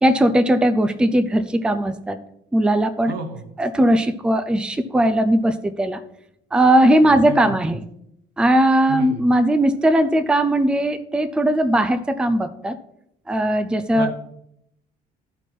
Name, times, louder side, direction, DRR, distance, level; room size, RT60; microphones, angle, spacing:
voice 1, 0.0-2.2 2.5-3.1 3.6-6.0 6.5-7.9 8.4-12.8 13.3-14.1, right 1 dB, 5° right, 10 dB, 0.5 m, -18 dB
voice 2, 3.1-3.5 7.3-7.5 8.9-9.2 13.9-14.1, right 3 dB, 80° right, 5 dB, 1.4 m, -31 dB
12.0 x 4.5 x 4.5 m, 0.78 s
cardioid pair, 110°, 17 cm